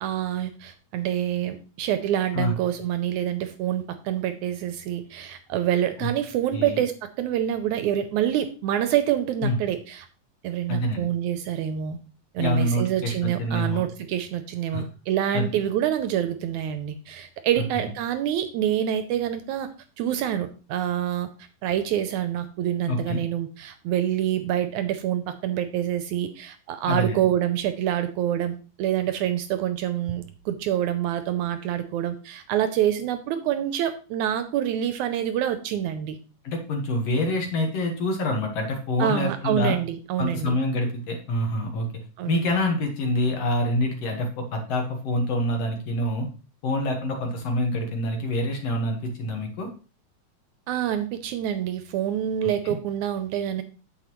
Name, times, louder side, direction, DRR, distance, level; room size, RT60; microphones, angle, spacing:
voice 1, 0.0-10.1 10.4-12.0 12.3-19.7 20.0-21.3 21.6-36.2 39.0-40.6 42.2-42.5 50.7-53.6, right 11 dB, 80° right, 9 dB, 1.8 m, -26 dB
voice 2, 10.7-11.1 12.4-13.8 14.7-14.8 15.3-15.5 17.7-17.9 22.9-23.2 26.9-27.2 36.4-39.8 40.2-41.9 42.3-46.3 46.6-49.7 52.6-52.8, left 1 dB, 60° left, 3 dB, 2.1 m, -26 dB
9.1 x 7.3 x 3.0 m, 0.35 s
omnidirectional pair, 3.7 m